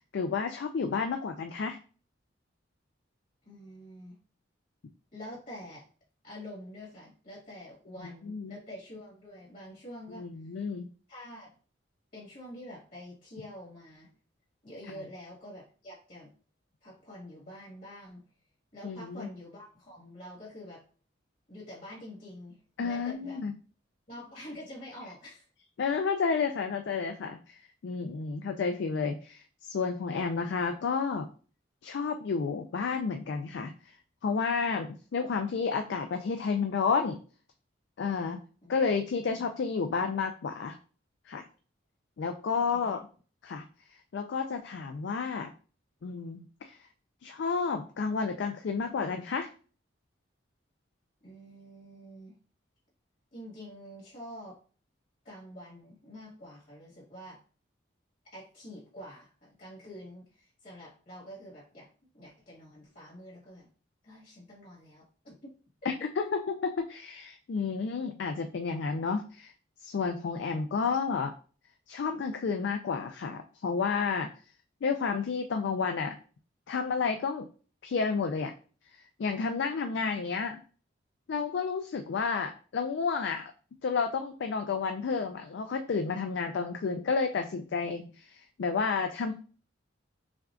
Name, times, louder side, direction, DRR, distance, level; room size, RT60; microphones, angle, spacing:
voice 1, 0.1-1.8 8.3-8.5 10.1-10.9 18.8-19.3 22.8-23.5 25.8-31.3 31.8-33.7 34.2-37.2 38.0-38.4 38.7-40.8 41.3-41.4 42.2-43.0 43.4-43.7 44.1-45.5 46.0-46.7 47.2-49.5 65.9-69.5 69.8-71.3 71.9-74.3 74.8-76.1 76.7-77.5 77.8-78.5 79.2-80.6 81.3-83.4 83.8-89.3, left 5 dB, 65° left, 6 dB, 0.3 m, -31 dB
voice 2, 3.4-4.1 5.1-5.8 6.2-10.2 11.1-11.5 12.1-14.1 14.6-16.3 16.8-18.2 18.7-20.8 21.5-22.6 22.8-23.4 24.1-25.4 38.6-38.8 39.3-39.4 42.5-43.0 51.2-52.3 53.3-54.6 55.2-57.4 58.2-61.9 62.1-63.7 64.0-65.5 70.8-71.0, equal, 45° left, -5 dB, 1.6 m, -47 dB
5.8 x 2.3 x 2.5 m, 0.39 s
head